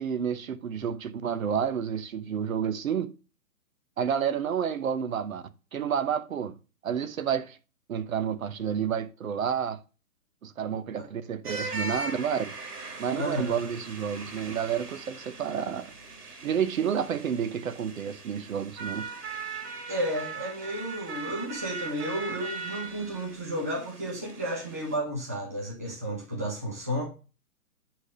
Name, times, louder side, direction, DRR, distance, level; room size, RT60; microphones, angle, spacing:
voice 1, 0.0-3.1 4.0-5.4 5.7-6.5 6.8-7.6 7.9-9.8 10.4-12.5 13.0-15.9 16.4-19.1, right 8 dB, 60° right, 0.9 m, -30 dB
sound 1, 11.4-25.0, right 4 dB, 80° right, 2.7 m, -40 dB
voice 2, 13.1-13.6 19.9-27.0, equal, 10° right, 0.6 m, -32 dB
9.1 x 3.5 x 6.2 m
hypercardioid pair, 170°, 46 cm